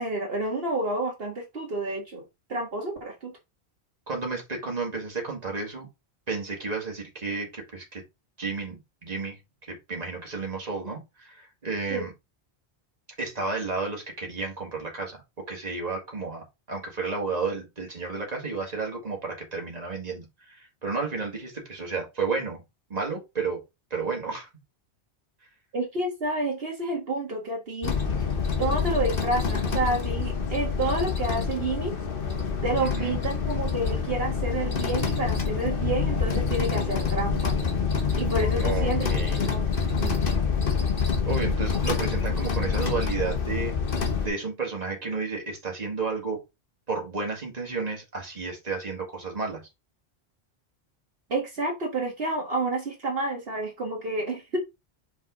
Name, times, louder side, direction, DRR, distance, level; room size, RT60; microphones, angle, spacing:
voice 1, 0.0-2.2 2.5-3.3 11.9-12.0 25.7-27.9 28.6-31.9 32.6-37.6 38.2-39.1 39.4-39.6 40.0-40.2 51.3-54.6, right 2 dB, 65° right, 1.7 m, -29 dB
voice 2, 4.1-5.9 6.3-8.0 8.4-9.4 9.7-12.1 13.2-15.2 15.5-22.6 22.9-23.6 23.9-24.5 32.8-33.2 38.5-39.4 41.2-43.7 44.2-46.4 46.9-49.6, right 4 dB, 40° right, 2.1 m, -32 dB
sound 1, 27.8-44.3, left 5 dB, 55° left, 1.3 m, -26 dB
5.5 x 4.5 x 3.9 m
omnidirectional pair, 1.1 m